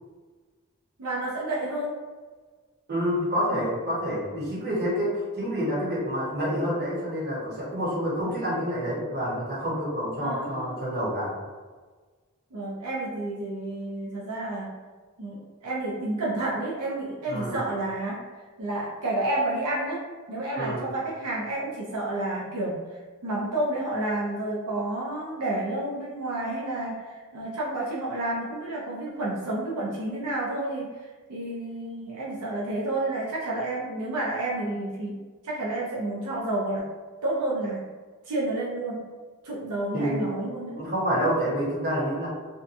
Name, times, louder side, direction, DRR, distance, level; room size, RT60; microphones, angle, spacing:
voice 1, 1.0-2.0 10.2-10.8 12.5-14.7 15.2-18.2 18.6-20.0 20.3-35.2 35.4-36.8 37.2-37.8 38.2-39.0 39.4-40.8, right 2 dB, 85° right, -6 dB, 0.5 m, -30 dB
voice 2, 2.9-11.3 17.3-17.6 20.6-20.8 39.9-40.3 40.8-42.3, equal, 45° right, -7 dB, 1.0 m, -28 dB
2.7 x 2.3 x 2.5 m, 1.4 s
head